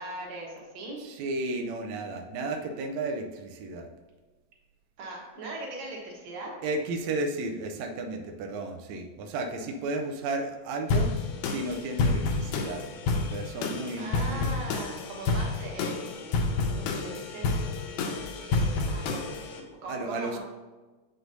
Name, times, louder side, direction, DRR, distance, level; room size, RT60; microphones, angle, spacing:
voice 1, 0.0-1.0 5.0-6.5 14.0-18.0 18.5-20.4, right 2 dB, 60° right, -2 dB, 2.4 m, -40 dB
voice 2, 1.0-3.9 6.6-11.1 11.4-14.4 19.9-20.4, right 2 dB, 85° right, 4 dB, 1.5 m, -33 dB
sound 1, 10.9-19.6, left 3 dB, 80° left, 2.1 m, -29 dB
7.9 x 6.4 x 2.6 m, 1.3 s
omnidirectional pair, 3.9 m